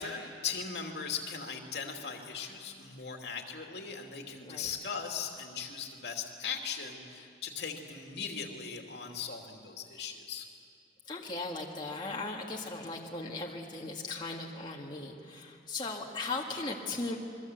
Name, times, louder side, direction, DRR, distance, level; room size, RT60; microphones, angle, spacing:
voice 1, 0.0-10.5, left 6 dB, 75° left, 2 dB, 2.8 m, -39 dB
voice 2, 11.1-17.2, left 3 dB, 25° left, -2 dB, 2.1 m, -38 dB
28.0 x 22.5 x 8.1 m, 2.4 s
head